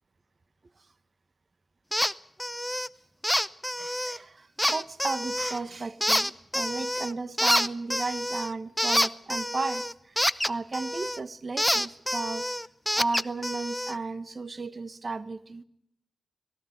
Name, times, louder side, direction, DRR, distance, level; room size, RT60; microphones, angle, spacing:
sound 1, 1.9-2.1 2.4-2.9 3.2-4.2 4.6-5.6 6.0-7.1 7.4-11.2 11.6-14.0, equal, 5° left, 0.7 m, -27 dB
voice 1, 3.8-10.2 10.5-12.4 13.0-15.6, right 3 dB, 50° right, 14 dB, 1.2 m, -34 dB
19.0 x 17.0 x 9.2 m, 0.75 s
cardioid pair, 60°, 0 cm